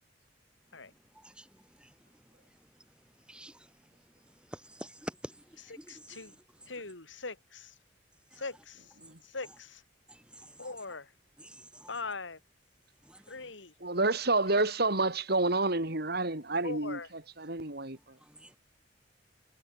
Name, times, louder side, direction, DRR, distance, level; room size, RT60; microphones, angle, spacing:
voice 1, 1.1-6.9 8.3-8.4 9.0-9.1 9.4-9.6 10.1-10.9 11.4-12.0 13.0-13.5 18.2-18.6, right 1 dB, 5° right, 4.5 m, -50 dB
voice 2, 5.9-6.3 6.7-7.7 8.4-8.8 9.3-9.8 10.6-11.1 11.9-12.4 13.3-13.7 14.5-14.7 16.6-17.1, left 3 dB, 85° left, 3.3 m, -41 dB
voice 3, 13.8-18.0, right 2 dB, 60° right, 4.4 m, -29 dB
head